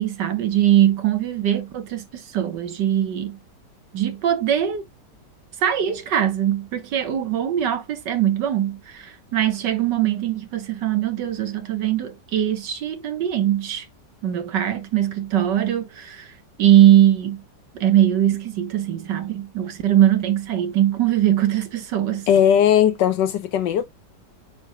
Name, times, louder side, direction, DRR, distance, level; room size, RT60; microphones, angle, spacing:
voice 1, 0.0-3.4 3.9-4.9 5.6-13.9 14.2-16.3 16.6-17.4 17.7-22.3, right 11 dB, 85° right, 1.9 m, -21 dB
voice 2, 22.3-23.8, left 9 dB, 85° left, 1.5 m, -18 dB
9.1 x 4.7 x 2.3 m
omnidirectional pair, 1.9 m